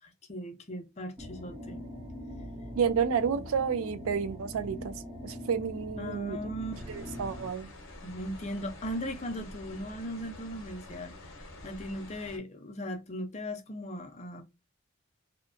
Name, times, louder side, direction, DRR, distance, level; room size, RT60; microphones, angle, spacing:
voice 1, 0.0-1.8 6.0-6.7 8.0-14.4, equal, 30° left, 0.5 m, -38 dB
sound 1, 1.2-7.5, left 1 dB, 20° right, 0.8 m, -42 dB
voice 2, 2.7-4.9 5.2-6.4 6.9-7.7, right 6 dB, 75° right, 0.4 m, -30 dB
sound 2, 6.7-12.4, left 2 dB, 70° left, 0.7 m, -47 dB
2.7 x 2.2 x 2.5 m
head